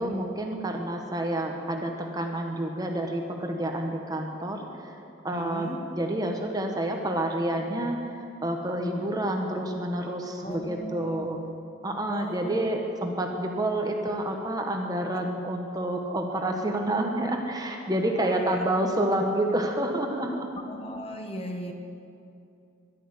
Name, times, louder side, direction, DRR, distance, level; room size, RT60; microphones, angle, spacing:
voice 1, 0.0-5.0 5.2-11.4 11.8-20.5, right 1 dB, 20° right, 2 dB, 1.2 m, -29 dB
voice 2, 5.3-5.9 10.4-11.4 12.1-12.8 18.1-18.6 19.2-19.3 20.7-21.7, equal, 30° left, 3 dB, 1.3 m, -37 dB
12.0 x 11.0 x 9.7 m, 2.5 s
head